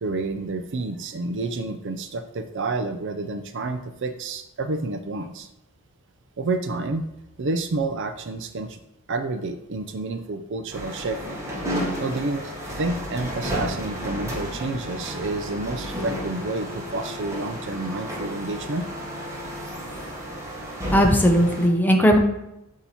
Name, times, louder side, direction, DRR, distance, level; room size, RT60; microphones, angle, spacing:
voice 1, 0.0-5.5 6.4-7.1 7.4-8.8 9.1-11.2 12.0-18.9, right 2 dB, 55° right, 9 dB, 0.5 m, -29 dB
sound 1, 10.7-21.7, equal, 15° right, 1.2 m, -32 dB
voice 2, 20.9-22.2, equal, 10° left, 3 dB, 0.7 m, -17 dB
6.9 x 2.9 x 5.6 m, 0.85 s
head